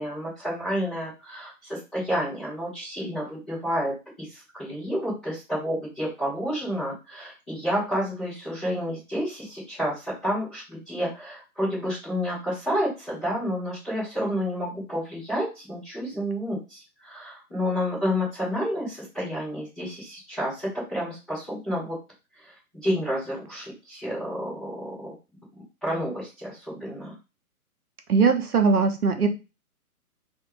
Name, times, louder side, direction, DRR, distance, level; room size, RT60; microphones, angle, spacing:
voice 1, 0.0-22.0 22.3-25.1 25.8-27.1, equal, ahead, -17 dB, 0.5 m, -30 dB
voice 2, 28.1-29.3, right 5 dB, 75° right, 6 dB, 1.1 m, -20 dB
3.4 x 2.9 x 4.7 m, 0.28 s
figure-of-eight pair, 135°, 45 cm